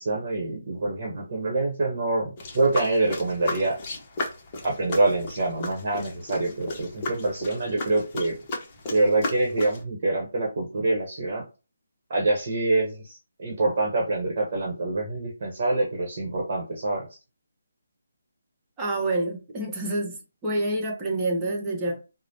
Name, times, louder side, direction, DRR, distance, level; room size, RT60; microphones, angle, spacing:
voice 1, 0.0-3.8 4.6-8.3 8.9-11.4 12.1-17.0, right 2 dB, 45° right, 0.9 m, -25 dB
sound 1, 2.4-9.8, left 2 dB, 30° left, 0.8 m, -35 dB
voice 2, 18.8-20.2 20.4-22.0, right 2 dB, 15° right, 0.9 m, -27 dB
4.8 x 2.1 x 2.8 m
hypercardioid pair, 160°, 0 cm